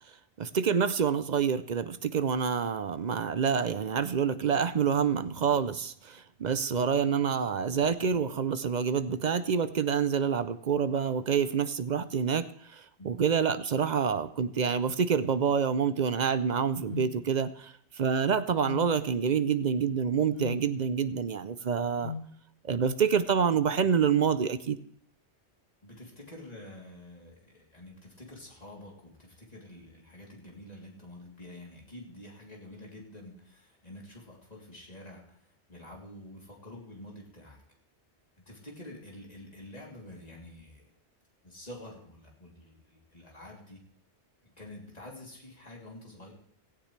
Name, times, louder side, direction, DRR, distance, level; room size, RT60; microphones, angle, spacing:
voice 1, 0.4-22.1 22.6-24.8, right 6 dB, 50° right, 13 dB, 0.6 m, -27 dB
sound 1, 16.9-17.2 18.6-18.9 20.4-20.7 22.0-22.3, left 5 dB, 65° left, 1.2 m, -37 dB
voice 2, 25.8-35.4 35.7-37.6 38.5-40.9 41.4-43.8 44.4-46.3, left 1 dB, 35° left, -2 dB, 3.3 m, -48 dB
17.0 x 15.0 x 3.3 m, 0.63 s
omnidirectional pair, 1.1 m